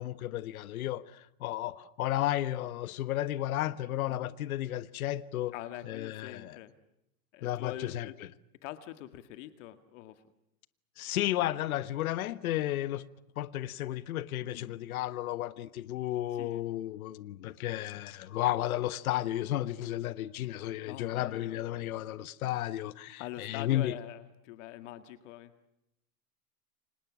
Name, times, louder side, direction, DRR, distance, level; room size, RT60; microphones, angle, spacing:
voice 1, 0.0-5.5 5.8-6.6 7.4-8.1 11.0-13.0 13.4-24.0, left 14 dB, 70° left, 1.3 m, -33 dB
voice 2, 3.9-4.3 5.5-6.7 7.3-8.2 8.6-10.2 14.4-14.8 16.4-16.6 20.9-21.6 23.2-25.7, left 13 dB, 55° left, 2.0 m, -44 dB
29.5 x 26.0 x 6.2 m
supercardioid pair, 150°, 45 cm